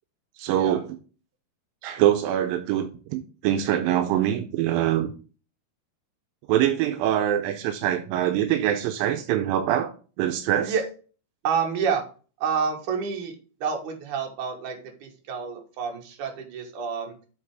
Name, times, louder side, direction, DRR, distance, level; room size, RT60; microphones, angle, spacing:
voice 1, 0.4-0.9 1.8-5.1 6.5-10.8, right 11 dB, 85° right, 2.3 m, -24 dB
voice 2, 11.4-12.0 12.4-13.4 13.6-17.1, right 6 dB, 65° right, 2.7 m, -28 dB
7.5 x 4.0 x 4.7 m
omnidirectional pair, 4.0 m